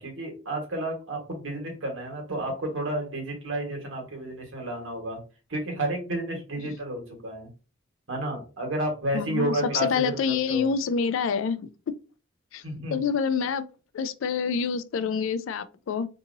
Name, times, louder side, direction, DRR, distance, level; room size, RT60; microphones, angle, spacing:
voice 1, 0.0-5.2 5.5-7.5 8.1-10.7 12.6-13.0, right 1 dB, 70° right, 1.3 m, -31 dB
voice 2, 9.1-11.6 12.5-12.6 12.9-13.6 13.9-16.1, left 6 dB, 70° left, 0.3 m, -27 dB
4.0 x 2.7 x 2.6 m
head